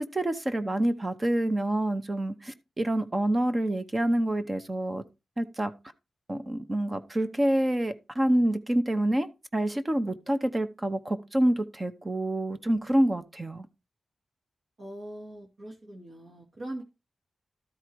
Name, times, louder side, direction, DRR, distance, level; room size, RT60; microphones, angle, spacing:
voice 1, 0.1-5.0 5.4-5.7 6.3-13.7, right 1 dB, 20° right, 0.8 m, -27 dB
voice 2, 14.8-16.8, right 1 dB, 50° right, 2.5 m, -41 dB
13.0 x 4.8 x 4.6 m
wide cardioid pair, 150°, 0 cm